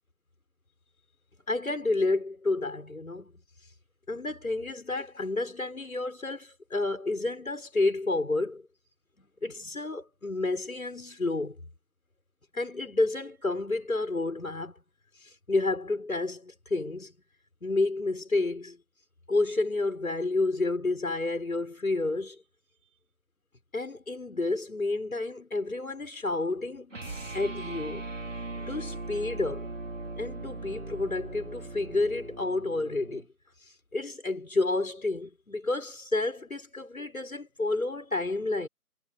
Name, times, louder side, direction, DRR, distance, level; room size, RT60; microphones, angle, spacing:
voice 1, 1.5-3.3 4.1-8.7 9.2-11.6 12.5-14.7 15.2-17.1 17.6-18.8 19.3-22.4 23.7-26.9 27.3-28.1 28.6-29.7 30.2-33.3 33.9-38.7, left 2 dB, 60° left, 6.1 m, -30 dB
sound 1, 26.9-33.3, right 2 dB, 50° right, 5.2 m, -39 dB
figure-of-eight pair, 170°, 48 cm